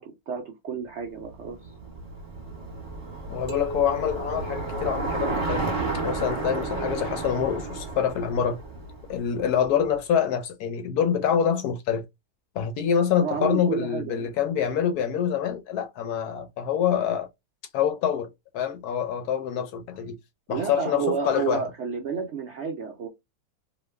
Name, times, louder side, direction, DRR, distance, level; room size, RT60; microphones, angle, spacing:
voice 1, 0.0-1.7 13.2-14.3 20.5-23.1, right 6 dB, 85° right, 0.6 m, -30 dB
Bicycle, 1.3-9.6, right 3 dB, 35° right, 1.1 m, -32 dB
voice 2, 3.3-8.6 9.1-12.0 12.6-17.3 17.7-18.3 18.5-20.2 20.5-21.6, left 8 dB, 70° left, 1.0 m, -26 dB
sound 1, 3.5-5.9, left 2 dB, 55° right, 1.0 m, -38 dB
3.0 x 2.2 x 3.1 m
omnidirectional pair, 1.9 m